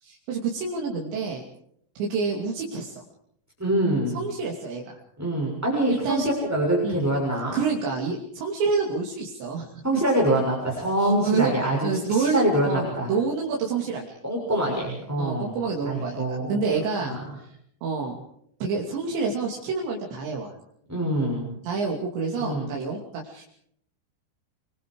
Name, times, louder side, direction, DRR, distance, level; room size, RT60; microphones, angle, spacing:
voice 1, 0.0-1.4 2.0-3.0 4.1-5.0 5.9-6.3 6.8-7.0 7.5-9.8 11.0-11.5 11.8-14.1 15.2-16.2 16.5-17.5 17.8-18.2 18.6-20.5 21.6-23.5, right 5 dB, 75° right, -1 dB, 4.9 m, -28 dB
voice 2, 3.6-4.2 5.2-7.6 9.8-13.1 14.2-15.6 15.8-16.6 17.0-17.2 20.9-21.5 22.4-22.7, right 1 dB, 5° right, -2 dB, 6.2 m, -25 dB
29.5 x 23.0 x 4.8 m, 0.68 s
omnidirectional pair, 5.2 m